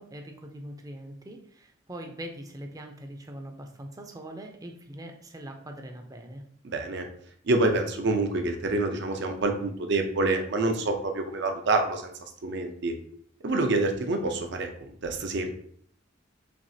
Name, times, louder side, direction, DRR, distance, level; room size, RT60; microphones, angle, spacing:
voice 1, 0.0-6.4, right 1 dB, 20° right, 4 dB, 0.5 m, -42 dB
voice 2, 6.6-7.1 7.5-12.1 12.4-12.9 13.4-15.5, right 2 dB, 60° right, 5 dB, 0.6 m, -27 dB
5.9 x 2.4 x 2.7 m, 0.62 s
head